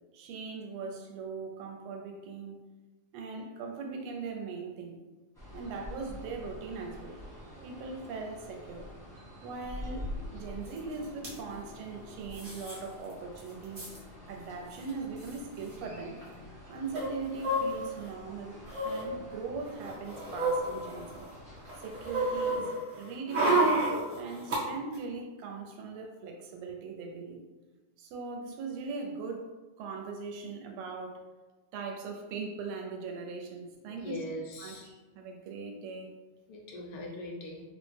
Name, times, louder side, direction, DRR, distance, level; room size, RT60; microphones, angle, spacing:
voice 1, 0.1-2.6 3.1-5.0 5.5-7.2 7.6-8.9 9.4-10.1 10.3-13.8 14.3-16.2 16.7-21.2 21.8-23.8 24.2-27.4 28.0-29.5 29.8-31.2 31.7-34.2 34.6-36.1, right 4 dB, 85° right, 2 dB, 1.5 m, -40 dB
sound 1, 5.3-22.6, left 1 dB, 5° left, 0.5 m, -47 dB
sound 2, 10.8-10.9 11.0-11.3 12.3-12.8 13.1-13.2 13.4-14.0 14.8-14.9 15.2-15.4 16.9-18.1 18.7-19.0 19.7-21.3 21.7-24.6 24.9-25.0, right 2 dB, 55° right, 0.6 m, -30 dB
voice 2, 33.9-34.9 36.5-37.6, left 1 dB, 75° left, -1 dB, 1.3 m, -41 dB
3.6 x 2.0 x 3.2 m, 1.2 s
omnidirectional pair, 2.4 m